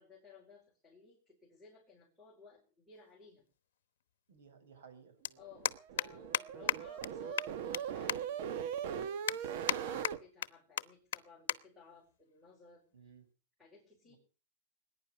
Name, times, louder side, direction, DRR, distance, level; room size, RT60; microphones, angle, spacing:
voice 1, 0.0-3.5 5.4-12.8 13.6-14.2, left 5 dB, 5° left, -6 dB, 4.7 m, -58 dB
sound 1, 3.0-3.1 4.5-4.6 4.7-4.9 5.2-5.3 5.7-6.1 6.3-6.4 6.7-6.8 7.0-7.1 7.4-7.8 8.1-8.2 8.7-8.8 9.3-9.8 10.0-10.5 10.8-10.9 11.1-11.2 11.5-11.6 11.9-12.1 12.9-13.2, left 11 dB, 80° left, 0.9 m, -33 dB
voice 2, 4.3-5.2 12.9-13.3 14.0-14.2, right 6 dB, 80° right, 9 dB, 6.7 m, -58 dB
sound 2, 5.5-10.2, right 8 dB, 50° right, 1.2 m, -40 dB
20.5 x 10.5 x 6.7 m, 0.38 s
supercardioid pair, 165°, 0 cm